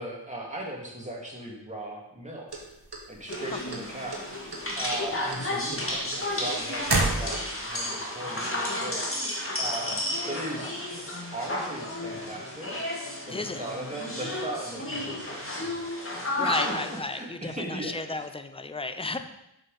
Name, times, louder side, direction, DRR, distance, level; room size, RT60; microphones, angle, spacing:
voice 1, 0.0-2.7 3.1-4.2 4.8-9.1 9.6-10.8 11.3-12.8 13.3-15.7 16.4-18.3, right 1 dB, 15° right, -2 dB, 2.2 m, -38 dB
sound 1, 2.5-3.8 4.1-4.6 4.9-7.7, right 2 dB, 60° right, 1.7 m, -29 dB
sound 2, 3.3-17.0, left 1 dB, 30° left, 1.8 m, -32 dB
voice 2, 13.3-13.6 16.4-19.2, left 3 dB, 15° left, 9 dB, 0.6 m, -33 dB
7.6 x 6.2 x 4.8 m, 0.86 s
wide cardioid pair, 50°, 42 cm